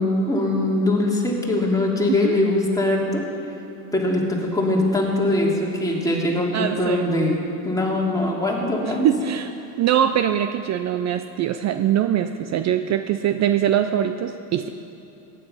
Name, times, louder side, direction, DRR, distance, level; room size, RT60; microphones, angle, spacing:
voice 1, 0.0-3.3 3.9-9.1, left 1 dB, 5° left, -3 dB, 2.7 m, -22 dB
voice 2, 2.1-2.4 6.5-7.1 8.3-8.4 8.8-9.5 9.8-14.7, right 10 dB, 35° right, 9 dB, 0.5 m, -22 dB
15.0 x 10.0 x 5.6 m, 2.8 s
hypercardioid pair, 90°, 49 cm